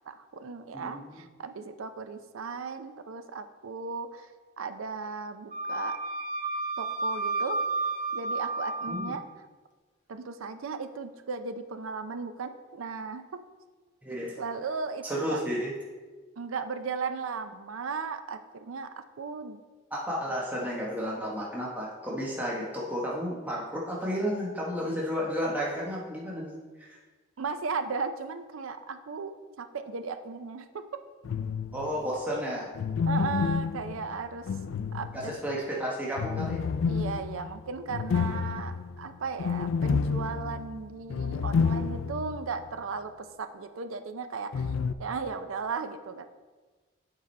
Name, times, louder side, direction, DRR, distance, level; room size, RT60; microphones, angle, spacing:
voice 1, 0.1-4.3 4.6-6.0 6.8-7.6 8.1-9.2 10.1-13.4 14.4-15.4 16.4-19.6 27.4-30.8 33.1-34.5 34.9-35.3 36.9-44.7 45.0-46.3, right 4 dB, 90° right, 9 dB, 0.5 m, -36 dB
voice 2, 0.7-1.2 8.9-9.1 14.0-14.3 15.0-15.7 19.9-27.0 31.7-32.7 35.1-36.6, equal, 10° right, -5 dB, 1.0 m, -32 dB
Wind instrument woodwind instrument, 5.5-9.1, right 2 dB, 40° right, 1.2 m, -31 dB
sound 1, 31.2-32.0 32.7-35.5 36.2-42.4 42.7-42.8 44.5-44.9, left 5 dB, 80° left, 0.4 m, -30 dB
8.0 x 4.8 x 4.2 m, 1.3 s
head